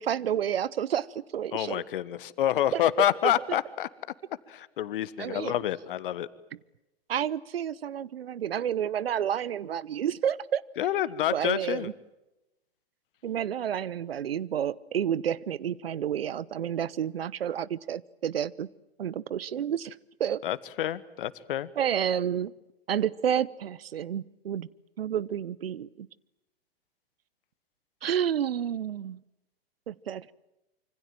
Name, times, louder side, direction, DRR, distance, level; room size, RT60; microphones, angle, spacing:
voice 1, 0.0-1.8 2.7-2.8 3.5-3.6 5.2-5.5 7.1-10.6 11.3-11.9 13.2-18.7 19.0-19.9 20.2-20.4 21.8-22.5 22.9-24.7 25.0-26.1 28.0-29.2 29.9-30.3, right 9 dB, 70° right, 21 dB, 0.9 m, -30 dB
voice 2, 1.5-3.9 4.5-6.3 10.8-11.9 20.4-21.7, left 12 dB, 60° left, 17 dB, 1.4 m, -28 dB
26.5 x 25.0 x 7.6 m, 0.95 s
figure-of-eight pair, 100°, 31 cm